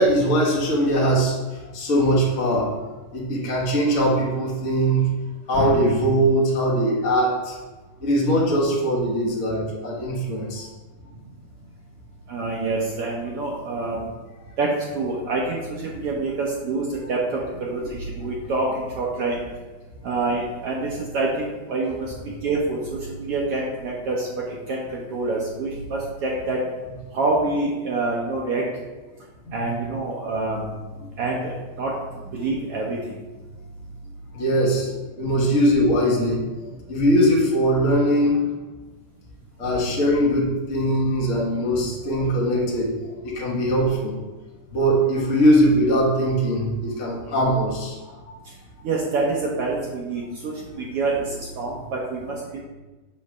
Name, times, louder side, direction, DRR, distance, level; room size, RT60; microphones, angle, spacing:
voice 1, 0.0-1.4 1.7-2.7 3.1-5.1 5.5-7.6 8.0-10.7 29.5-29.6 31.0-31.1 34.3-38.4 39.6-42.9 43.2-44.1 44.7-47.9 48.3-48.4, equal, 65° left, -4 dB, 0.7 m, -21 dB
voice 2, 12.3-14.0 14.6-19.4 20.0-22.1 22.4-26.6 27.1-28.6 29.5-30.6 31.2-31.9 32.3-33.1 39.7-39.9 48.8-52.4, right 3 dB, 75° right, -3 dB, 1.3 m, -26 dB
7.2 x 3.2 x 6.0 m, 1.2 s
omnidirectional pair, 3.7 m